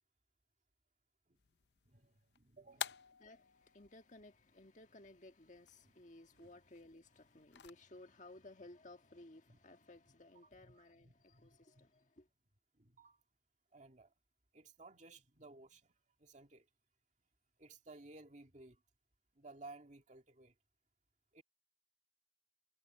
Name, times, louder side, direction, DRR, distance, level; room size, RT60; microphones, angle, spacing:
sound 1, 1.3-7.7, left 8 dB, 70° left, 0.6 m, -51 dB
voice 1, 1.9-3.0 6.3-6.5 9.5-9.6 10.4-12.1 12.7-13.2 13.7-14.1 14.5-16.7 17.6-18.8 19.3-20.5 21.3-21.4, right 2 dB, 40° right, 2.1 m, -58 dB
voice 2, 3.2-12.3, left 2 dB, 45° left, 1.6 m, -58 dB
head